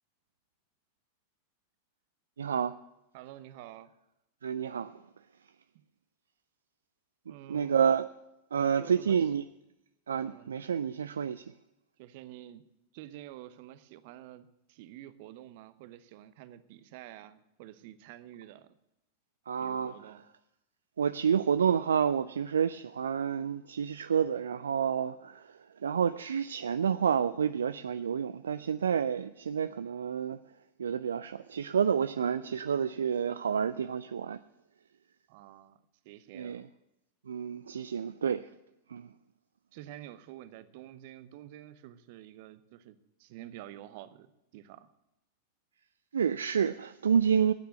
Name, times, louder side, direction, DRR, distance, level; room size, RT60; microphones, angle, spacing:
voice 1, 2.4-2.7 4.4-5.0 7.5-8.1 8.5-9.4 10.1-11.5 19.5-20.1 21.0-30.4 30.8-34.4 36.3-36.7 37.3-38.5 38.9-39.1 46.1-47.5, right 7 dB, 70° right, 0.3 m, -29 dB
voice 2, 3.1-3.9 7.3-7.8 8.8-9.3 10.2-10.6 12.0-12.6 12.9-18.8 19.6-20.2 35.3-35.8 36.0-36.6 39.7-44.9, right 13 dB, 50° right, 0.8 m, -49 dB
13.5 x 9.3 x 6.3 m
figure-of-eight pair, 90°, 0 cm